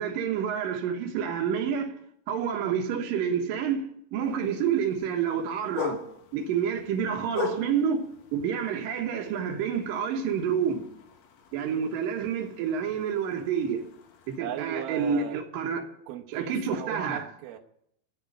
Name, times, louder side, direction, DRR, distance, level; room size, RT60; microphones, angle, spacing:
voice 1, 0.0-1.9 2.3-3.9 4.1-6.0 6.3-8.0 8.3-10.8 11.5-13.8 14.3-15.9 16.3-17.3, right 7 dB, 75° right, 2.9 m, -28 dB
sound 1, 4.2-14.4, left 7 dB, 70° left, 1.6 m, -41 dB
voice 2, 14.4-15.4 16.1-17.6, right 11 dB, 90° right, 2.9 m, -37 dB
13.0 x 6.8 x 9.4 m
omnidirectional pair, 4.2 m